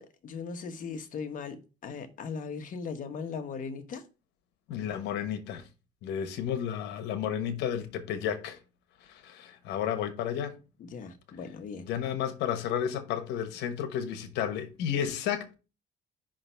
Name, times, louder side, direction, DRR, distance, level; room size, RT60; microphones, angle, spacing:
voice 1, 0.0-1.6 1.8-4.0 10.8-11.8, left 5 dB, 50° left, 1.2 m, -38 dB
voice 2, 4.7-5.7 6.0-8.6 9.0-10.6 11.8-15.6, left 9 dB, 85° left, 1.1 m, -32 dB
5.6 x 3.8 x 5.6 m
cardioid pair, 110°, 17 cm